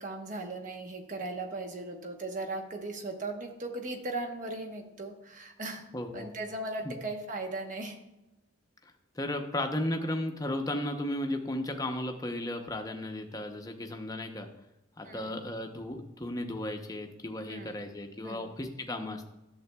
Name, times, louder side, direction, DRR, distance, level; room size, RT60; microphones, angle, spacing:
voice 1, 0.0-5.8 6.1-8.0 15.0-15.4 17.5-17.8 18.2-18.5, right 2 dB, 40° right, 2 dB, 1.0 m, -38 dB
voice 2, 5.9-6.3 6.8-6.9 8.8-14.5 15.0-19.3, left 1 dB, 15° left, 4 dB, 0.6 m, -35 dB
11.0 x 7.4 x 2.2 m, 0.98 s
head